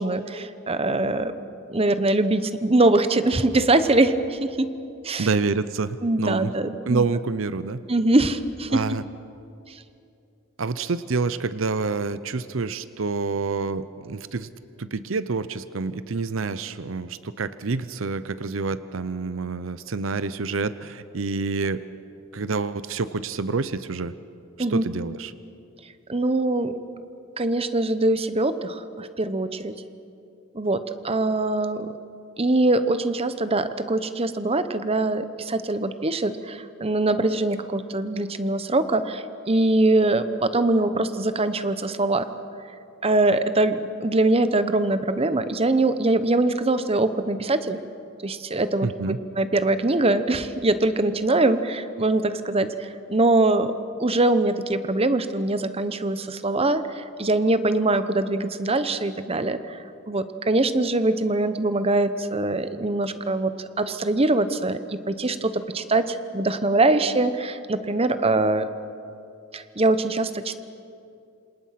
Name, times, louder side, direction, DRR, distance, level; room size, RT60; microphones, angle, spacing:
voice 1, 0.0-1.3 1.7-4.7 5.0-5.3 6.0-7.1 7.9-9.0 24.6-24.8 26.1-26.7 27.4-29.7 30.5-31.9 32.4-42.3 43.0-47.8 48.2-53.7 54.0-59.8 60.1-68.7 69.5-70.6, right 2 dB, 30° right, 11 dB, 1.0 m, -23 dB
voice 2, 5.2-6.5 6.8-7.8 8.7-9.0 10.6-14.5 14.8-21.8 22.3-24.1 24.7-25.3 48.8-49.2, right 4 dB, 75° right, 14 dB, 0.7 m, -27 dB
27.5 x 27.0 x 5.9 m, 2.6 s
head